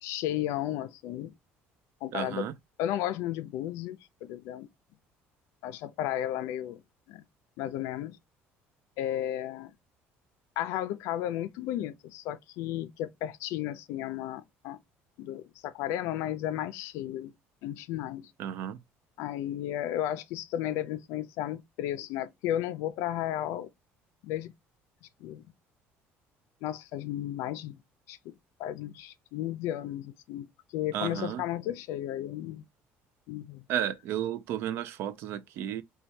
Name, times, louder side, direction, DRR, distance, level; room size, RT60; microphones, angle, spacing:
voice 1, 0.0-1.3 2.0-2.5 2.8-4.7 5.6-6.8 7.1-7.2 7.6-8.2 9.0-9.7 10.6-14.8 15.2-17.3 17.6-18.3 19.2-23.7 24.2-24.5 25.0-25.5 26.6-27.8 28.1-28.3 28.6-32.6 33.3-33.6, left 12 dB, 70° left, 0.4 m, -34 dB
voice 2, 2.1-2.5 18.4-18.8 30.9-31.4 33.7-35.8, right 10 dB, 55° right, 0.4 m, -33 dB
4.4 x 2.2 x 2.6 m
cardioid pair, 180°, 5 cm